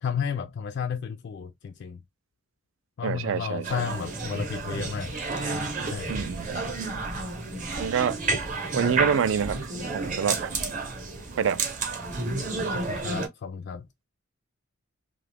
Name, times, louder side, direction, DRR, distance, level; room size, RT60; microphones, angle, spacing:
voice 1, 0.0-2.0 3.0-5.1 5.9-6.2 12.6-13.9, left 7 dB, 55° left, 0.3 m, -32 dB
voice 2, 3.0-3.9 6.1-6.7 7.8-8.2 8.7-9.6 9.9-10.5 11.4-11.6, right 7 dB, 65° right, 0.4 m, -27 dB
sound 1, 3.6-13.3, right 3 dB, 40° right, 0.8 m, -31 dB
2.8 x 2.3 x 3.3 m
head